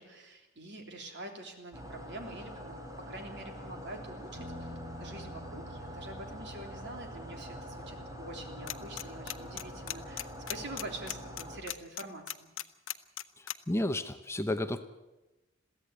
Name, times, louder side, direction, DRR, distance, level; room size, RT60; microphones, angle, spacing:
voice 1, 0.0-2.8 3.1-12.5, right 2 dB, 60° right, 3 dB, 3.4 m, -45 dB
sound 1, 1.7-11.6, equal, 20° right, 3.2 m, -45 dB
Bass guitar, 4.3-10.6, right 1 dB, 40° right, 6.5 m, -50 dB
sound 2, 8.7-9.0 9.3-13.5, left 13 dB, 85° left, 0.8 m, -36 dB
voice 2, 13.7-14.9, left 1 dB, 15° left, 9 dB, 0.8 m, -31 dB
22.0 x 15.5 x 8.1 m, 1.0 s
head